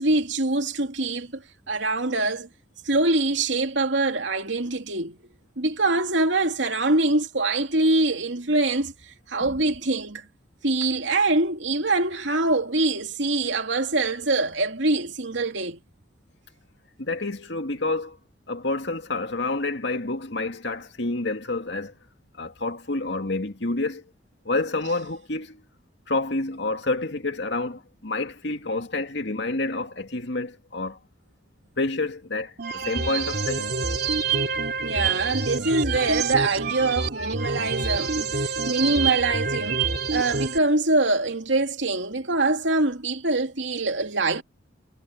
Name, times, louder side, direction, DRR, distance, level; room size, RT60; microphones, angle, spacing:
voice 1, 0.0-1.4 1.7-2.5 2.8-5.2 5.6-10.3 10.6-15.8 34.8-39.8 40.1-44.4, right 2 dB, 75° right, 2.7 m, -24 dB
voice 2, 17.0-18.2 18.5-21.9 22.4-24.0 24.5-25.6 26.1-31.0 31.8-33.7, left 2 dB, 65° left, 2.3 m, -28 dB
sound 1, 32.6-40.6, right 4 dB, 55° right, 3.2 m, -27 dB
head